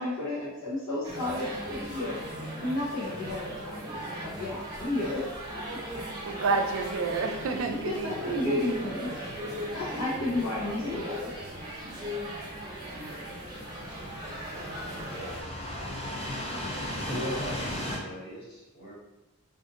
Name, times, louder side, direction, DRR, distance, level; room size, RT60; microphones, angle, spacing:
voice 1, 0.0-2.2 2.6-5.2 5.5-5.8 7.8-9.3 9.7-11.3, left 2 dB, 70° left, -7 dB, 0.8 m, -32 dB
sound 1, 1.0-15.4, equal, 20° right, 0.7 m, -38 dB
sound 2, 4.3-18.0, left 1 dB, 30° left, 0.5 m, -40 dB
voice 2, 6.2-8.5, right 4 dB, 65° right, 5 dB, 0.4 m, -29 dB
voice 3, 17.1-18.9, equal, 50° left, -7 dB, 1.3 m, -37 dB
2.6 x 2.5 x 3.7 m, 1.0 s
head